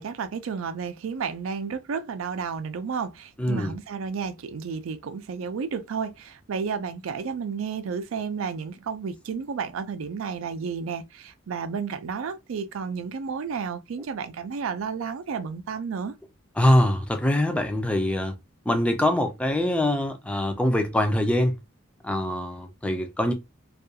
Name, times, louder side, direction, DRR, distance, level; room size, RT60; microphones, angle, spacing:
voice 1, 0.0-16.2, right 6 dB, 80° right, 0.4 m, -32 dB
voice 2, 3.4-3.8 16.6-18.4 18.7-21.5 22.0-23.3, left 1 dB, 5° left, 0.4 m, -23 dB
2.4 x 2.2 x 2.7 m
head